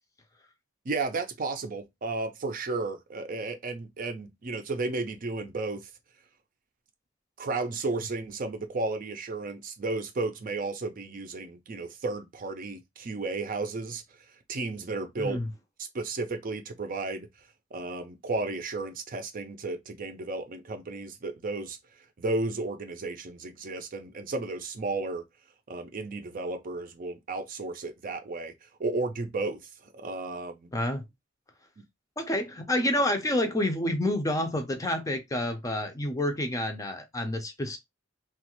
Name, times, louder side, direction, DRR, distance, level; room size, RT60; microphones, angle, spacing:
voice 1, 0.9-5.9 7.4-14.0 14.5-15.4 15.8-17.3 17.7-21.8 22.2-25.2 25.7-30.7, right 3 dB, 45° right, 0.5 m, -33 dB
voice 2, 15.2-15.5 30.7-31.0 32.2-37.8, left 1 dB, 15° left, 0.5 m, -28 dB
3.0 x 2.4 x 2.9 m
head